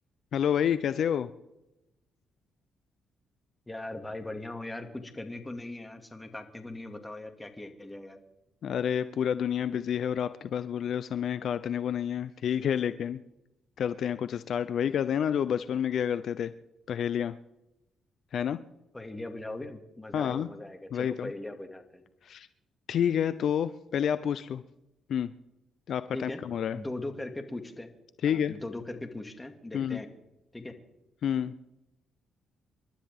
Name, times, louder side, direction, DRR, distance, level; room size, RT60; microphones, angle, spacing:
voice 1, 0.3-1.3 8.6-13.2 13.8-16.5 16.9-17.4 18.3-18.6 20.1-20.5 20.9-21.3 22.3-22.5 22.9-24.6 25.1-25.3 25.9-26.8 28.2-28.5 29.7-30.0 31.2-31.5, left 9 dB, 65° left, 13 dB, 0.6 m, -29 dB
voice 2, 3.7-8.2 18.9-22.0 26.1-26.4 26.7-27.9 28.3-30.1 30.5-30.8, left 2 dB, 15° left, 6 dB, 2.3 m, -39 dB
29.0 x 12.0 x 3.7 m, 0.95 s
cardioid pair, 90°, 0 cm